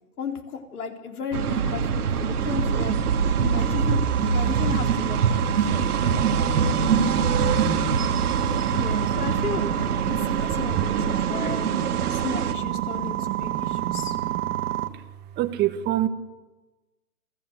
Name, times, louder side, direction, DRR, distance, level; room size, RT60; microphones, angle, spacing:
voice 1, 0.2-2.9 3.4-5.5 8.7-11.7 12.1-14.2, left 6 dB, 70° left, 4 dB, 4.3 m, -34 dB
sound 1, 1.3-12.5, right 6 dB, 70° right, 2.5 m, -24 dB
sound 2, 2.4-14.9, right 14 dB, 50° right, 1.7 m, -30 dB
voice 2, 10.0-12.2 12.7-14.4 15.4-16.1, right 12 dB, 20° right, 9 dB, 1.6 m, -30 dB
27.5 x 17.5 x 8.2 m, 1.1 s
hypercardioid pair, 140°, 46 cm